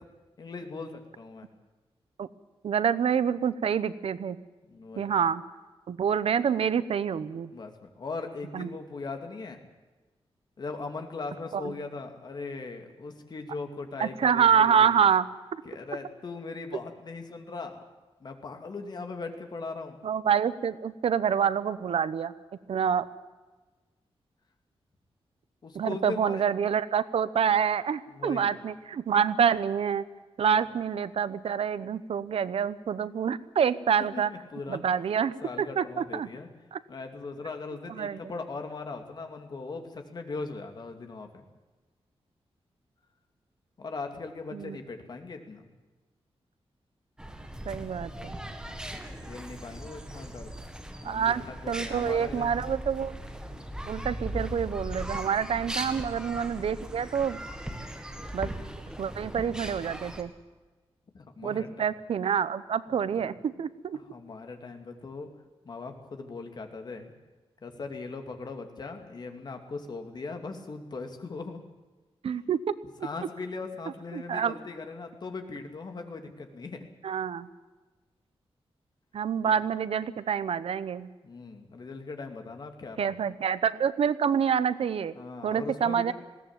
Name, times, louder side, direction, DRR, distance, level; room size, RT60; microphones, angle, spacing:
voice 1, 0.4-1.5 4.6-5.1 7.5-9.6 10.6-15.0 15.6-17.8 18.2-20.0 22.7-22.8 25.6-26.4 28.2-28.5 34.0-34.9 35.4-36.5 36.9-41.4 43.8-45.7 49.2-50.5 51.0-52.6 53.5-53.7 55.8-56.1 59.4-60.0 61.1-61.8 63.0-63.3 64.1-65.3 65.6-67.1 67.6-71.6 73.0-76.9 79.4-79.6 81.2-83.1 85.2-86.1, left 3 dB, 45° left, 5 dB, 2.5 m, -39 dB
voice 2, 2.6-4.4 5.0-5.4 5.9-7.5 8.5-8.7 11.5-11.7 14.0-15.3 20.0-22.3 22.7-23.1 25.7-30.0 30.4-34.3 34.7-36.3 36.7-36.8 37.9-38.2 44.5-44.8 47.7-48.4 51.0-53.1 53.9-57.4 58.3-58.5 59.0-60.3 61.4-64.0 72.2-72.6 74.1-74.5 77.0-77.5 79.1-81.1 83.0-85.1 85.4-86.1, right 7 dB, 75° right, 15 dB, 0.9 m, -27 dB
sound 1, 47.2-60.2, equal, 5° right, 1.9 m, -39 dB
20.5 x 17.5 x 9.0 m, 1.2 s
wide cardioid pair, 175°, 10 cm